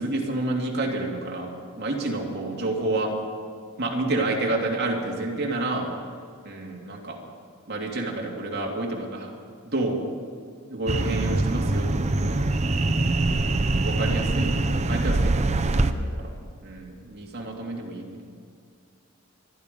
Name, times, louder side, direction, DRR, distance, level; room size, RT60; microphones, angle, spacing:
voice 1, 0.0-3.1 3.8-5.9 6.4-7.2 7.7-9.3 9.6-10.0 10.7-12.4 13.8-16.1 16.6-18.2, right 2 dB, 50° right, -1 dB, 2.6 m, -29 dB
sound 1, 10.9-15.9, right 2 dB, 30° right, 0.7 m, -23 dB
25.5 x 10.5 x 5.3 m, 2.3 s
head